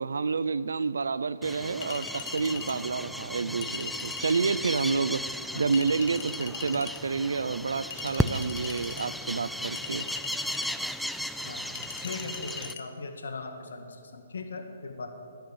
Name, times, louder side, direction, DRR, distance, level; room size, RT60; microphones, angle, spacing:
voice 1, 0.0-10.1, right 4 dB, 85° right, 16 dB, 0.5 m, -29 dB
sound 1, 1.4-12.7, equal, ahead, 0.3 m, -35 dB
Chink clink, 1.8-2.8 3.6-4.5 5.7-7.0 7.9-9.1 9.8-10.8 11.8-12.8, left 6 dB, 50° left, 1.0 m, -40 dB
voice 2, 5.5-5.9 9.3-9.4 11.4-15.1, left 3 dB, 80° left, 5 dB, 1.5 m, -39 dB
11.0 x 8.0 x 8.7 m, 2.5 s
hypercardioid pair, 155°, 0 cm